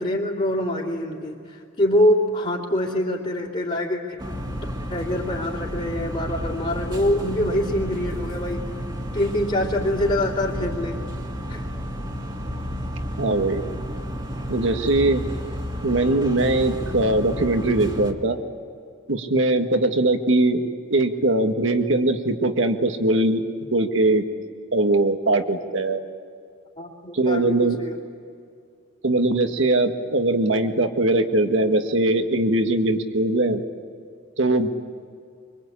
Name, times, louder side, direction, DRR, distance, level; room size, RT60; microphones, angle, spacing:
voice 1, 0.0-4.2 4.9-8.7 9.1-11.0 11.5-11.6 26.8-28.0, left 1 dB, 35° left, -5 dB, 3.0 m, -24 dB
sound 1, 4.2-18.1, equal, 25° right, 2.1 m, -31 dB
voice 2, 13.2-13.6 14.5-15.3 15.8-18.4 19.1-23.4 23.7-24.2 24.7-26.0 27.1-27.8 29.0-33.6 34.4-34.7, right 2 dB, 75° right, 6 dB, 1.8 m, -21 dB
25.0 x 24.5 x 8.6 m, 2.3 s
head